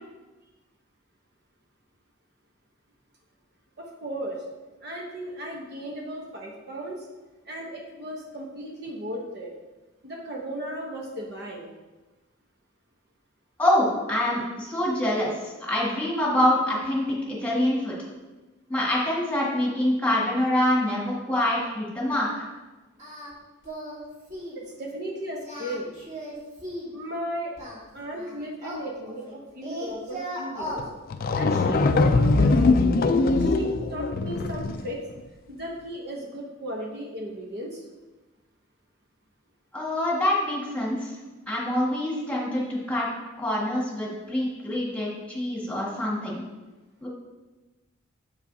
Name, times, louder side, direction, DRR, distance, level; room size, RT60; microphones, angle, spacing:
voice 1, 3.8-4.4 4.8-7.1 7.5-9.5 10.0-11.7 24.8-25.9 26.9-27.6 27.9-30.8 31.3-32.8 33.3-35.0 35.5-37.8, equal, 55° right, 0 dB, 0.9 m, -35 dB
voice 2, 13.6-15.3 15.6-17.9 18.7-22.5 39.7-41.1 41.5-43.1 43.4-46.4 47.0-47.1, left 1 dB, 5° left, -5 dB, 1.7 m, -25 dB
Singing, 23.0-23.3 23.6-24.0 24.3-24.6 25.3-26.9 27.6-29.3 29.6-30.8, equal, 35° right, 1.8 m, -37 dB
sound 1, 30.8-30.9 31.1-34.9, left 3 dB, 45° left, 0.3 m, -21 dB
7.5 x 7.1 x 2.7 m, 1.2 s
head